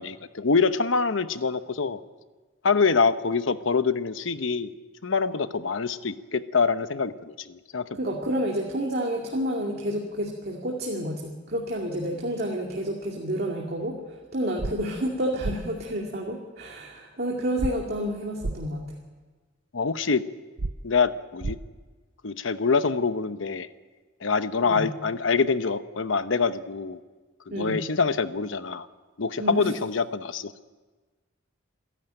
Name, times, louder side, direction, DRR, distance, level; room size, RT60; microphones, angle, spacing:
voice 1, 0.0-2.0 2.6-4.7 5.0-8.0 19.7-20.2 20.8-21.6 22.2-23.7 24.2-27.0 27.5-28.9 29.2-30.5, left 4 dB, 85° left, 12 dB, 0.9 m, -25 dB
voice 2, 7.9-18.9 24.6-24.9 27.5-27.8 29.4-29.7, equal, 55° right, -1 dB, 2.4 m, -30 dB
sound 1, 14.6-14.7 15.4-15.6 17.6-17.7 18.4-18.6 20.6-20.7 21.4-21.5, right 2 dB, 85° right, 0.7 m, -28 dB
27.5 x 11.5 x 9.0 m, 1.3 s
head